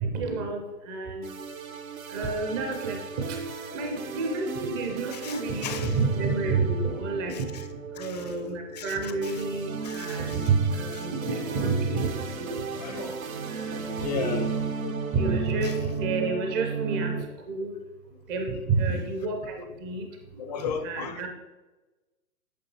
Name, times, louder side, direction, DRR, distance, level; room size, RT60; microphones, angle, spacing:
voice 1, 0.0-0.6 0.9-1.3 2.1-3.0 3.7-7.3 8.0-12.1 12.4-12.7 13.5-14.4 15.1-15.7 16.0-17.1 17.5-17.7 18.3-19.4 19.8-20.0 20.8-21.3, right 4 dB, 15° right, 2 dB, 0.5 m, -29 dB
sound 1, 1.2-17.2, right 5 dB, 65° right, 1.0 m, -35 dB
voice 2, 5.1-6.0 7.3-7.7 7.9-8.4 8.7-9.4 9.8-10.5 10.9-11.1 11.6-11.7 12.7-13.2 14.0-14.5 14.8-14.9 15.6-15.8 16.9-17.0 18.9-19.1 20.4-21.3, left 6 dB, 30° left, 8 dB, 0.5 m, -36 dB
8.5 x 6.7 x 2.9 m, 1.1 s
figure-of-eight pair, 120°, 44 cm